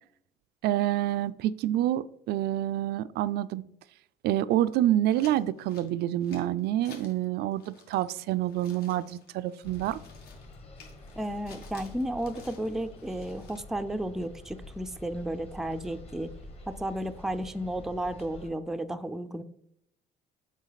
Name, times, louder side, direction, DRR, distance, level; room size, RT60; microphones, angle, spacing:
voice 1, 0.6-3.6 4.2-10.0, right 13 dB, 70° right, 15 dB, 0.4 m, -27 dB
sound 1, 5.1-7.2 7.5-13.6, left 4 dB, 70° left, 1.7 m, -53 dB
sound 2, 9.6-18.5, left 2 dB, 35° left, 1.7 m, -47 dB
voice 2, 11.2-16.3 16.7-19.4, right 1 dB, ahead, 8 dB, 0.4 m, -33 dB
7.3 x 4.8 x 4.0 m, 0.73 s
cardioid pair, 110°, 17 cm